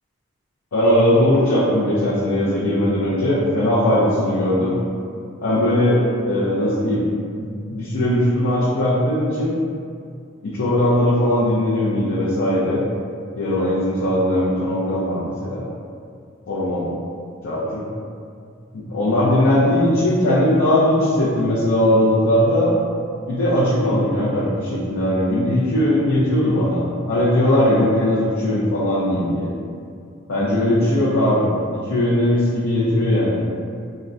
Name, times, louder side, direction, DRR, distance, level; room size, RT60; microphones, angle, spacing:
voice 1, 0.7-4.7 5.4-6.0 6.2-7.0 7.4-9.5 10.4-12.8 13.4-15.6 16.5-16.9 17.4-17.8 18.7-22.7 23.3-29.5 30.3-33.4, left 1 dB, 85° left, -10 dB, 0.5 m, -19 dB
3.6 x 2.1 x 2.4 m, 2.3 s
head